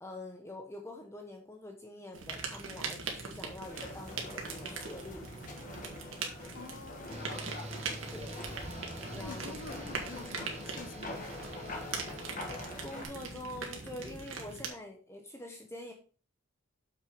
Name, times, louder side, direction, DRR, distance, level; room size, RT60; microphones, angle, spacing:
voice 1, 0.0-5.3 7.3-7.6 8.1-8.3 9.1-9.6 12.3-15.9, left 1 dB, 15° left, 0.9 m, -46 dB
sound 1, 2.1-14.7, right 4 dB, 75° right, 2.0 m, -42 dB
sound 2, 3.6-13.0, left 2 dB, 40° left, 1.8 m, -45 dB
voice 2, 6.5-7.5 9.2-11.5, left 4 dB, 65° left, 0.7 m, -48 dB
sound 3, 7.1-12.4, right 1 dB, 30° right, 0.9 m, -46 dB
7.0 x 6.2 x 5.1 m
head